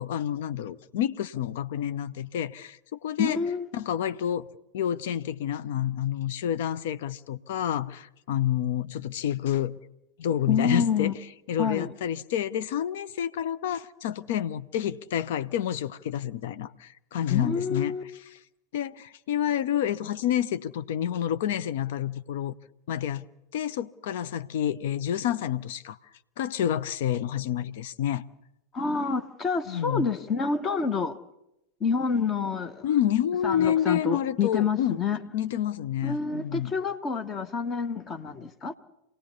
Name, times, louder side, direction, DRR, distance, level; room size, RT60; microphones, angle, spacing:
voice 1, 0.0-3.4 3.7-4.5 4.7-9.8 10.2-11.1 11.5-18.0 18.7-22.5 22.9-23.2 23.5-26.0 26.4-28.2 29.7-30.1 32.8-35.0 35.3-36.7, left 10 dB, 55° left, 0.8 m, -29 dB
voice 2, 3.2-3.7 10.5-11.1 11.6-11.9 17.3-18.0 28.7-31.2 31.8-32.8 33.4-35.2 36.0-38.7, left 5 dB, 25° left, 1.1 m, -28 dB
27.5 x 18.0 x 5.5 m
figure-of-eight pair, 90°, 0 cm